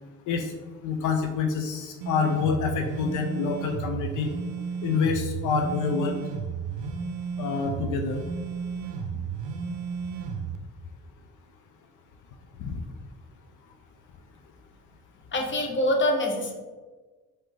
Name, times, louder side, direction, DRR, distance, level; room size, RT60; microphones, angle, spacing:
voice 1, 0.8-4.3 4.8-6.2 7.4-8.2 12.6-12.8, left 5 dB, 80° left, 4 dB, 0.5 m, -27 dB
sound 1, 2.0-10.6, right 6 dB, 80° right, 0.5 m, -33 dB
voice 2, 15.3-16.5, left 1 dB, 40° left, 2 dB, 0.9 m, -25 dB
4.6 x 2.7 x 3.8 m, 1.3 s
cardioid pair, 90°, 30 cm